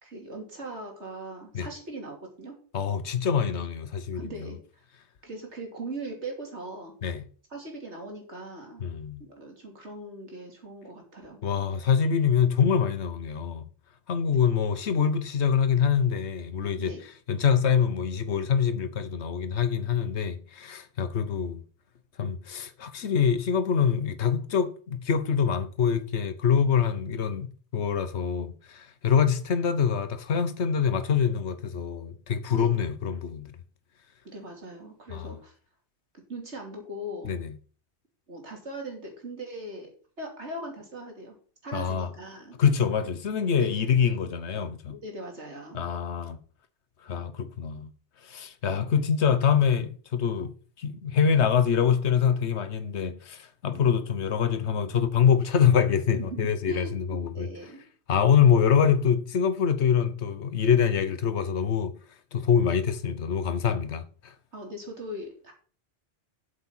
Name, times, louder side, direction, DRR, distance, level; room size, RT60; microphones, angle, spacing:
voice 1, 0.0-2.6 4.1-4.6 5.2-6.9 7.5-8.8 9.2-11.4 16.8-17.0 32.5-32.7 34.2-35.5 36.3-37.4 38.3-39.9 40.2-41.3 41.6-42.6 43.6-44.1 44.9-45.8 56.1-56.9 57.3-57.8 64.5-65.5, right 1 dB, 85° right, 3.3 m, -40 dB
voice 2, 2.7-4.5 7.0-7.2 8.8-9.2 11.4-13.6 14.1-16.9 17.3-21.6 22.2-27.5 27.7-33.6 35.1-35.3 37.2-37.5 41.7-42.1 42.6-45.0 45.7-46.4 47.0-47.9 48.2-50.5 50.8-57.5 58.1-61.9 62.3-64.3, left 7 dB, 80° left, 1.3 m, -25 dB
8.0 x 7.3 x 5.6 m
omnidirectional pair, 1.1 m